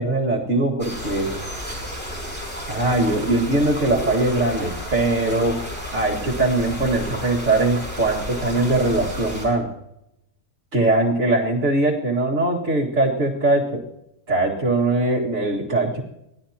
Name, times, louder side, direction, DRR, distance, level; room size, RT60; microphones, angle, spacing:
voice 1, 0.0-1.4 2.7-5.6 5.9-9.7 10.7-13.8 14.3-16.0, right 2 dB, 55° right, -4 dB, 2.3 m, -21 dB
sound 1, 0.8-9.5, equal, 5° left, 6.2 m, -32 dB
24.0 x 17.0 x 2.9 m, 0.85 s
omnidirectional pair, 1.5 m